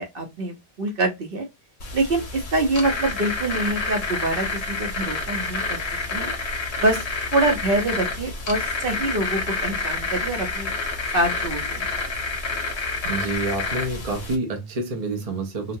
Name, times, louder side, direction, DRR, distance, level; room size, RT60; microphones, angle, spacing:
voice 1, 0.0-1.4 1.9-5.8 6.1-6.3 6.8-7.0 7.3-10.7 11.1-11.9, right 2 dB, 55° right, 1.0 m, -25 dB
sound 1, 1.8-14.4, left 3 dB, 70° left, 1.2 m, -28 dB
voice 2, 13.0-15.8, right 2 dB, 40° right, 0.6 m, -28 dB
3.0 x 2.3 x 2.6 m
omnidirectional pair, 1.1 m